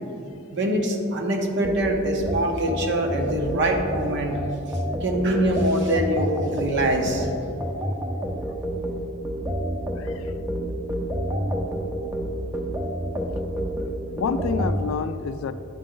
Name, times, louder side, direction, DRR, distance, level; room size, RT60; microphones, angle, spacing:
voice 1, 0.5-4.4 5.0-7.3, right 1 dB, 55° right, 2 dB, 0.9 m, -24 dB
sound 1, 1.6-14.8, equal, 10° right, 0.6 m, -29 dB
voice 2, 10.0-10.3 14.1-15.5, left 5 dB, 65° left, 12 dB, 0.3 m, -28 dB
9.0 x 5.0 x 3.8 m, 2.7 s
head